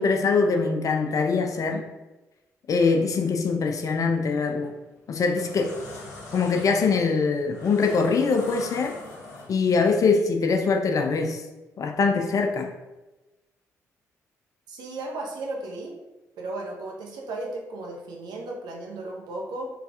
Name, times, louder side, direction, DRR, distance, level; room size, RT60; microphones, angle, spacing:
voice 1, 0.0-1.8 2.7-4.7 5.1-5.8 6.3-9.0 9.5-11.4 11.8-12.7, left 4 dB, 45° left, 4 dB, 0.4 m, -23 dB
sound 1, 4.5-4.6 5.1-9.8, left 2 dB, 75° left, 1.0 m, -42 dB
voice 2, 14.7-15.9 16.4-19.7, right 2 dB, 60° right, 0 dB, 0.7 m, -35 dB
3.4 x 3.1 x 2.4 m, 1.0 s
figure-of-eight pair, 40°, 8 cm